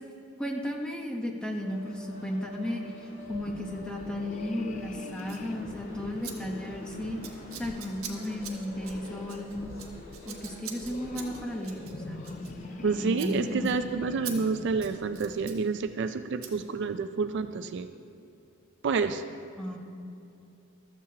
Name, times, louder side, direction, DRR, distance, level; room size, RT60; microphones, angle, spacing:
voice 1, 0.4-7.2 7.6-9.7 10.3-12.4 13.0-13.7 19.6-19.8, left 1 dB, 5° left, 0 dB, 0.9 m, -34 dB
sound 1, 1.6-15.5, left 1 dB, 65° left, 3.2 m, -47 dB
sound 2, 3.2-15.7, left 3 dB, 35° left, 0.3 m, -45 dB
Scissors, 5.2-5.5 6.2-6.3 6.6-6.9 7.2-12.9 13.1-13.3 13.6-13.8 14.2-14.4 14.7-15.6 16.4-16.5, right 9 dB, 80° right, 1.2 m, -43 dB
voice 2, 12.8-17.9 18.8-19.2, right 4 dB, 55° right, 9 dB, 0.4 m, -29 dB
15.0 x 12.5 x 2.8 m, 2.6 s
head